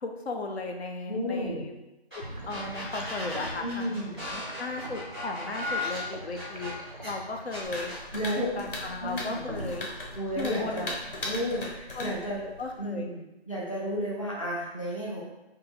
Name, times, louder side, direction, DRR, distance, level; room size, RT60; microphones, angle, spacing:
voice 1, 0.0-1.7 2.1-6.7 7.0-7.9 8.4-9.9 10.4-10.9 11.9-12.1 12.6-13.1, left 3 dB, 70° left, 2 dB, 0.6 m, -36 dB
voice 2, 1.1-1.7 3.6-4.2 8.1-8.5 9.0-9.4 10.1-10.9 11.2-12.5 12.8-15.2, equal, 30° left, -6 dB, 0.5 m, -32 dB
sound 1, 2.1-2.2 2.5-7.1 7.5-8.0, left 2 dB, 10° left, 0.9 m, -36 dB
sound 2, 2.2-11.4, right 1 dB, 35° right, 0.4 m, -44 dB
sound 3, 7.6-12.8, left 2 dB, 55° left, 0.9 m, -39 dB
2.7 x 2.6 x 4.0 m, 0.98 s
hypercardioid pair, 175°, 33 cm